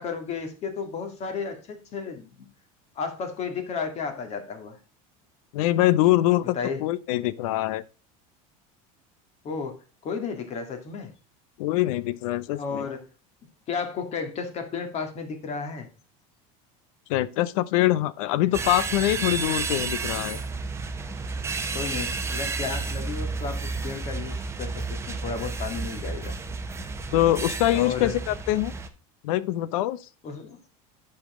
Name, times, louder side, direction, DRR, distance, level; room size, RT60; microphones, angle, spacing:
voice 1, 0.0-2.5 3.0-4.8 6.5-6.8 9.4-11.1 12.5-13.0 13.7-15.9 21.7-26.4 27.7-28.1 30.2-30.6, left 5 dB, 40° left, 2.0 m, -33 dB
voice 2, 5.5-7.8 11.6-12.9 17.1-20.4 27.1-28.7 29.2-30.0, left 15 dB, 80° left, 0.7 m, -24 dB
sound 1, 18.5-28.9, right 4 dB, 15° right, 0.9 m, -31 dB
8.4 x 5.8 x 3.6 m
supercardioid pair, 145°, 18 cm